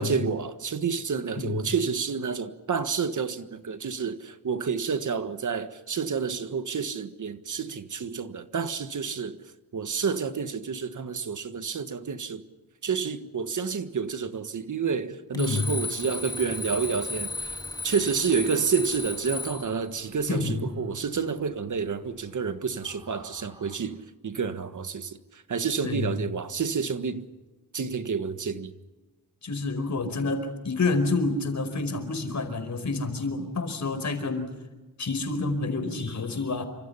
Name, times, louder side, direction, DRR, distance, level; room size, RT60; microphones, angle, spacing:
voice 1, 0.0-9.4 9.7-12.4 12.8-17.6 17.8-24.0 24.2-27.3 27.7-28.7, right 6 dB, 55° right, 1.6 m, -29 dB
voice 2, 15.3-15.6 20.3-20.6 25.8-26.0 29.4-34.5 35.0-36.6, left 3 dB, 55° left, 4.9 m, -28 dB
Alarm, 15.3-19.8, left 3 dB, 10° left, 2.3 m, -35 dB
sound 1, 16.0-23.7, equal, 10° right, 5.8 m, -50 dB
29.0 x 25.5 x 5.7 m
wide cardioid pair, 120°, 35 cm